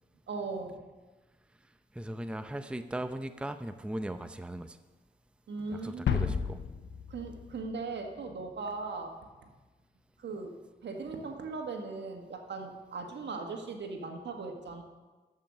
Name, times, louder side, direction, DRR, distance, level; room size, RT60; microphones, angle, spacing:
voice 1, 0.3-0.8 5.5-6.3 7.1-9.1 10.2-10.6 10.8-14.8, right 3 dB, 70° right, 4 dB, 1.6 m, -38 dB
voice 2, 1.9-4.8 5.7-6.6, right 1 dB, 5° right, 9 dB, 0.6 m, -38 dB
sound 1, 6.1-8.1, left 7 dB, 75° left, 0.9 m, -32 dB
13.5 x 5.6 x 6.4 m, 1.2 s
supercardioid pair, 45°, 19 cm